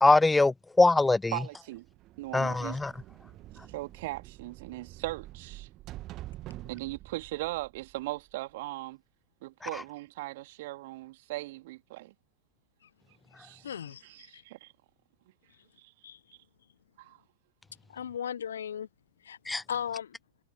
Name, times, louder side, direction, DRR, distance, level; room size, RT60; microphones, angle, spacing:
voice 1, 0.0-1.3 2.3-2.9 19.5-19.6, left 3 dB, 10° left, 0.4 m, -22 dB
voice 2, 1.3-1.8 2.2-2.8 3.7-5.7 6.7-9.0 9.4-12.1 13.4-13.7 14.0-14.7 15.8-15.9 17.0-17.2, right 19 dB, 50° right, 2.6 m, -38 dB
sound 1, 1.8-8.5, right 16 dB, 35° right, 1.9 m, -47 dB
voice 3, 13.6-14.4 16.0-16.2 17.9-18.9 19.2-19.4 19.7-20.2, left 8 dB, 65° left, 1.2 m, -36 dB
figure-of-eight pair, 90°, 0 cm